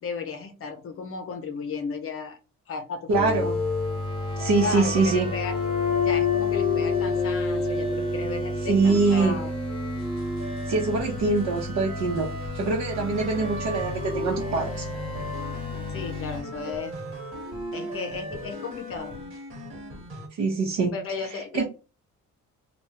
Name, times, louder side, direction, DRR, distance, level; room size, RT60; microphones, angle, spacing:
voice 1, 0.0-2.4 2.7-3.5 4.6-5.6 6.0-9.5 15.9-17.0 17.7-19.2 20.9-21.6, left 4 dB, 50° left, 0.6 m, -34 dB
sound 1, 3.1-16.4, left 4 dB, 15° left, 1.0 m, -29 dB
voice 2, 3.1-3.6 4.4-5.3 8.7-9.4 10.7-12.3 12.5-14.9 20.3-21.0 21.2-21.6, right 3 dB, 65° right, 0.9 m, -24 dB
sound 2, 4.4-19.4, right 1 dB, 25° right, 0.9 m, -38 dB
sound 3, 10.0-10.7 11.0-11.7 12.0-20.3, left 1 dB, 40° right, 1.3 m, -42 dB
3.4 x 2.3 x 2.8 m
cardioid pair, 180°, 30 cm